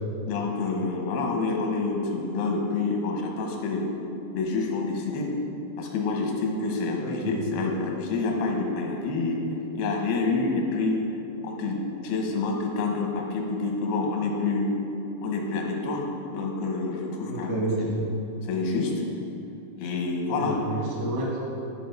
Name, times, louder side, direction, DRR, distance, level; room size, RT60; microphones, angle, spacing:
voice 1, 0.3-3.9 4.3-5.3 5.8-9.4 9.8-11.0 11.4-14.7 15.2-16.0 16.3-17.5 18.4-18.9 19.8-20.6, left 3 dB, 90° left, 0 dB, 3.1 m, -27 dB
voice 2, 7.0-7.3 17.2-18.0 20.4-21.3, right 2 dB, 60° right, -4 dB, 1.0 m, -30 dB
12.5 x 4.6 x 5.4 m, 2.9 s
omnidirectional pair, 4.4 m